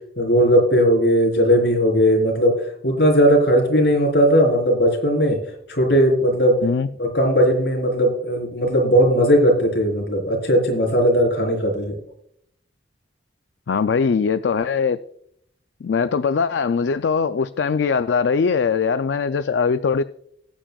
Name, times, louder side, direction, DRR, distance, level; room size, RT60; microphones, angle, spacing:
voice 1, 0.2-2.5 2.8-5.4 5.7-6.6 7.0-12.0, equal, 70° left, 4.1 m, -17 dB
voice 2, 13.7-15.0 15.8-20.0, left 5 dB, 85° left, 0.4 m, -21 dB
19.0 x 8.8 x 2.3 m
head